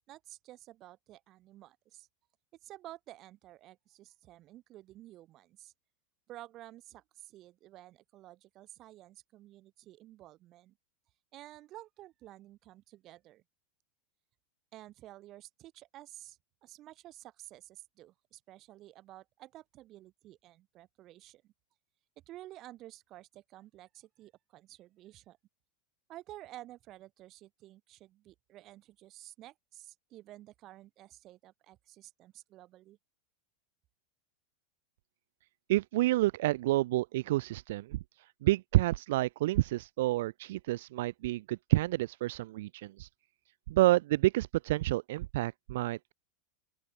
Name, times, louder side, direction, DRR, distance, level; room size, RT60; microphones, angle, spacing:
voice 1, 0.1-2.1 2.6-5.7 6.3-10.8 11.3-13.4 14.7-21.5 22.3-25.4 26.1-33.0, right 15 dB, 45° right, 4.4 m, -52 dB
voice 2, 35.7-38.0 38.4-43.1 43.7-46.1, right 17 dB, 65° right, 0.7 m, -29 dB
open air
figure-of-eight pair, 90°, 0 cm